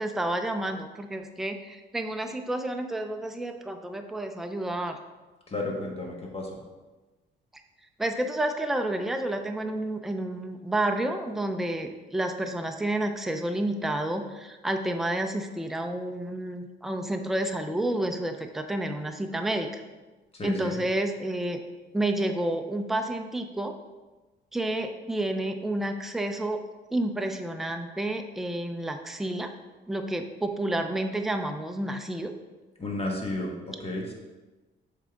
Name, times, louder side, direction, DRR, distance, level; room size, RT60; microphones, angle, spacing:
voice 1, 0.0-5.0 8.0-19.8 20.4-21.6 21.9-23.7 24.5-26.6 26.9-29.5 29.9-32.3, right 1 dB, ahead, 5 dB, 0.5 m, -30 dB
voice 2, 5.5-6.6 20.3-20.8 32.8-34.1, left 2 dB, 30° left, 0 dB, 1.4 m, -32 dB
7.3 x 3.7 x 3.5 m, 1.2 s
cardioid pair, 90°, 20 cm